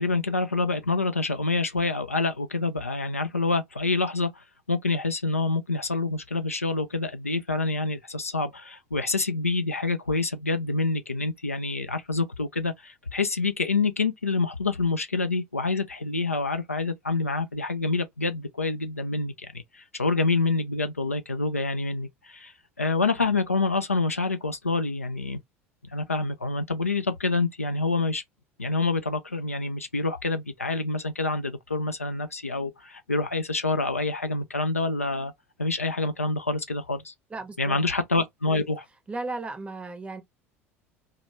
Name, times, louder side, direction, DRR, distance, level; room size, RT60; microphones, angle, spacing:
voice 1, 0.0-25.4 25.9-28.2 28.6-35.3 35.6-37.1 37.6-38.8, left 3 dB, 85° left, 0.4 m, -27 dB
voice 2, 37.3-37.8 39.1-40.2, right 3 dB, 15° right, 0.7 m, -35 dB
2.1 x 2.0 x 3.0 m
figure-of-eight pair, 70°, 7 cm